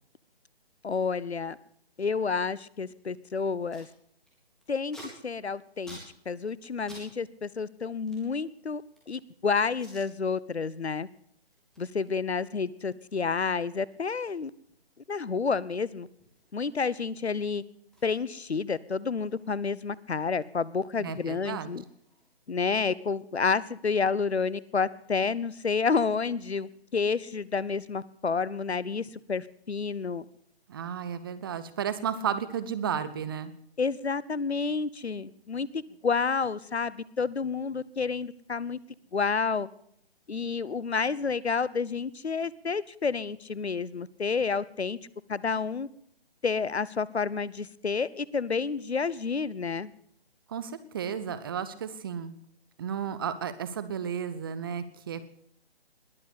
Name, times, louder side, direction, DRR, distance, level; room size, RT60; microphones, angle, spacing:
voice 1, 0.8-1.6 2.0-3.9 4.7-6.0 6.3-11.1 11.8-14.5 15.1-16.1 16.5-17.6 18.0-21.8 22.5-30.2 33.8-38.8 39.1-39.7 40.3-45.0 45.3-45.9 46.4-49.9, left 5 dB, 85° left, 20 dB, 0.9 m, -30 dB
Packing tape duct tape, 3.7-3.9 4.2-7.1 7.3-9.2 9.7-10.1 10.5-10.8 11.1-17.3 17.6-17.7 17.9-20.3 20.6-22.5, equal, ahead, 3.7 m, -54 dB
voice 2, 21.0-21.7 30.7-33.5 50.5-52.4 52.8-55.2, right 8 dB, 20° right, 13 dB, 0.7 m, -33 dB
20.5 x 7.8 x 8.3 m, 0.69 s
figure-of-eight pair, 145°, 32 cm